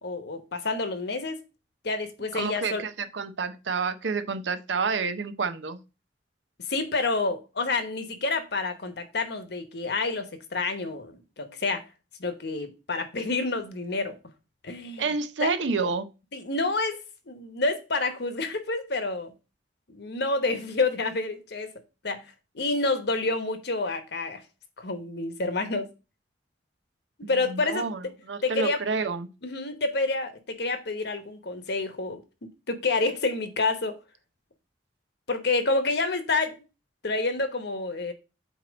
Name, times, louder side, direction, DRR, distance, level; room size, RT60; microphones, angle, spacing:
voice 1, 0.0-1.4 1.8-2.8 6.7-11.9 12.2-14.1 14.6-15.0 15.4-15.5 16.3-17.0 17.3-19.3 19.9-21.7 22.0-24.4 24.8-25.9 27.3-28.1 28.4-28.8 29.4-32.2 32.7-34.0 35.3-36.6 37.0-38.1, left 3 dB, 65° left, 1.0 m, -28 dB
voice 2, 2.3-5.8 15.0-16.1 27.2-29.3, right 4 dB, 90° right, 0.7 m, -29 dB
8.1 x 2.9 x 5.1 m
head